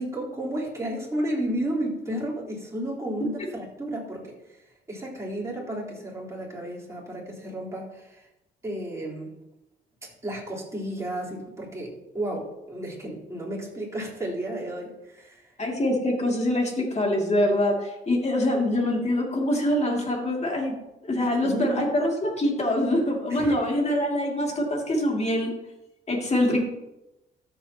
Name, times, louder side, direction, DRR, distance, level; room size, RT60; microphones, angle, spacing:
voice 1, 0.0-4.6 4.9-8.3 8.6-9.3 10.0-15.5 21.2-21.8 23.3-23.5, right 1 dB, 15° right, -5 dB, 4.1 m, -32 dB
voice 2, 15.6-20.7 21.0-25.5 26.1-26.6, left 1 dB, 35° left, 0 dB, 2.7 m, -24 dB
13.5 x 7.6 x 3.0 m, 0.93 s
cardioid pair, 90°, 20 cm